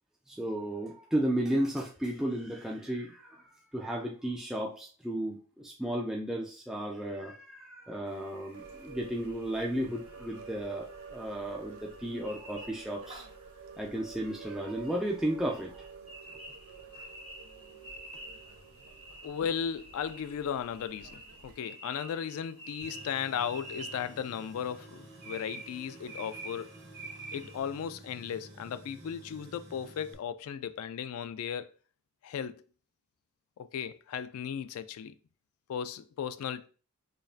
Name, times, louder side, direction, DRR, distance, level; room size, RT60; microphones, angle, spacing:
voice 1, 0.3-3.4 3.7-13.2 13.8-15.9, right 1 dB, 5° right, 0.3 m, -34 dB
sound 1, 8.0-27.6, right 2 dB, 30° right, 1.7 m, -50 dB
sound 2, 8.5-21.6, right 5 dB, 80° right, 0.5 m, -50 dB
voice 2, 19.2-26.7 27.3-31.7 32.2-32.6 33.6-35.2 35.7-36.7, left 8 dB, 85° left, 0.3 m, -36 dB
Tools, 22.8-30.1, right 1 dB, 55° right, 1.4 m, -51 dB
5.0 x 2.6 x 2.4 m
head